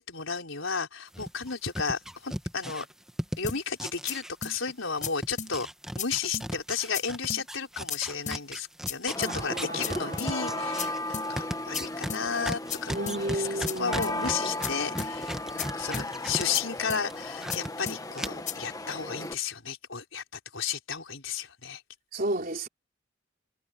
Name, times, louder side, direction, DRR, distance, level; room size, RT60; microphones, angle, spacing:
voice 1, 0.0-2.9 3.4-5.7 6.0-21.8, left 6 dB, 80° left, 4.2 m, -33 dB
sound 1, 1.1-4.7 5.0-16.5 16.8-17.7 18.1-18.3, equal, 5° right, 1.5 m, -36 dB
sound 2, 3.5-3.6 4.1-4.2 4.4-4.6 5.0-5.1 5.4-5.5 6.0-6.1 6.3-6.5 6.9-7.0 7.3-7.4 7.9-8.0 8.3-8.4 8.9-9.0 9.2-9.4 9.8-9.9 10.2-10.3 10.8-10.9 11.1-11.3 11.7-11.8 12.1-12.2 12.7-12.8 13.1-13.2 13.7-13.8 14.0-14.2 14.6-14.7 15.0-15.1 15.6-15.7 15.9-16.1 16.5-16.6 16.9-17.0 17.5-17.6 17.9-18.0 18.5-18.6, left 7 dB, 40° left, 6.4 m, -34 dB
sound 3, 9.1-19.3, left 2 dB, 20° left, 1.4 m, -36 dB
voice 2, 9.2-10.9 12.9-14.4 22.1-22.7, right 1 dB, 45° right, 3.9 m, -34 dB
head